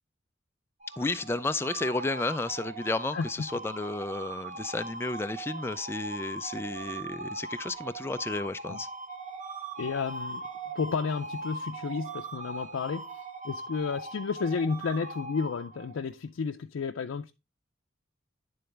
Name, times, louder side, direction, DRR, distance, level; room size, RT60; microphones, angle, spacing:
sound 1, 0.8-16.1, right 2 dB, 40° right, 0.6 m, -40 dB
voice 1, 1.0-8.9, left 2 dB, 10° left, 0.3 m, -32 dB
voice 2, 9.8-10.4 10.8-13.1 13.4-17.3, left 5 dB, 90° left, 0.4 m, -32 dB
10.5 x 3.9 x 3.2 m
head